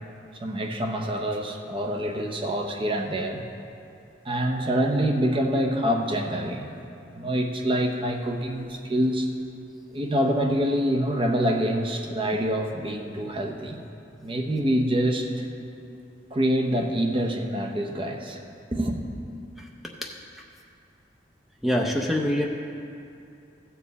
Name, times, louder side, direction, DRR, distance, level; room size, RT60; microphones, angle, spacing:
voice 1, 0.4-3.4 4.2-6.7 7.1-9.3 9.9-13.8 14.2-15.4 16.3-18.4 18.7-19.0, equal, 30° right, 3 dB, 0.8 m, -26 dB
voice 2, 21.6-22.5, equal, ahead, -1 dB, 0.6 m, -25 dB
15.0 x 7.1 x 4.1 m, 2.6 s
head